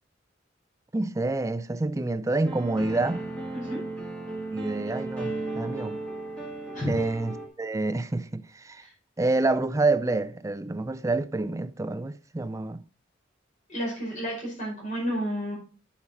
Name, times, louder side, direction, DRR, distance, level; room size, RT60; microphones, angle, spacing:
voice 1, 0.9-3.3 4.5-6.0 6.9-7.3 7.6-8.8 9.2-12.8, right 2 dB, 15° right, 0.4 m, -27 dB
sound 1, 2.4-7.5, right 2 dB, 5° left, 2.1 m, -35 dB
voice 2, 13.7-15.6, equal, 45° left, 5.0 m, -31 dB
9.7 x 5.8 x 4.3 m
head